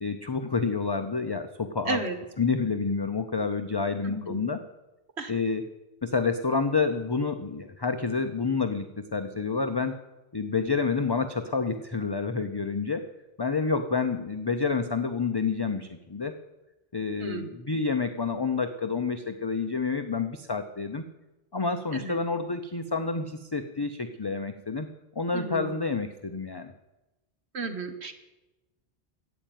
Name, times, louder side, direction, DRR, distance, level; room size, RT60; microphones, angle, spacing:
voice 1, 0.0-2.0 2.4-4.6 5.3-5.6 6.0-10.0 10.3-13.1 13.4-16.3 16.9-21.0 21.5-24.9 25.2-26.7, left 4 dB, 25° left, 7 dB, 0.6 m, -28 dB
voice 2, 4.0-4.4 5.2-5.3 17.2-17.5 21.9-22.2 25.3-25.7 27.5-28.1, right 3 dB, 70° right, 7 dB, 1.8 m, -33 dB
13.5 x 9.0 x 9.1 m, 1.1 s
omnidirectional pair, 1.1 m